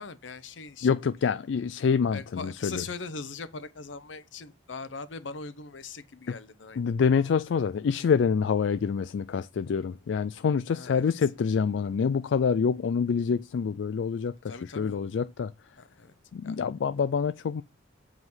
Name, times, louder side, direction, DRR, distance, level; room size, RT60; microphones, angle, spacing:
voice 1, 0.0-1.4 2.1-6.9 10.7-11.1 14.5-15.0 15.8-16.2 16.4-16.6, left 4 dB, 85° left, 0.9 m, -41 dB
voice 2, 0.8-2.8 6.8-15.5 16.3-17.6, left 6 dB, 70° left, 0.4 m, -26 dB
7.9 x 5.0 x 5.5 m
head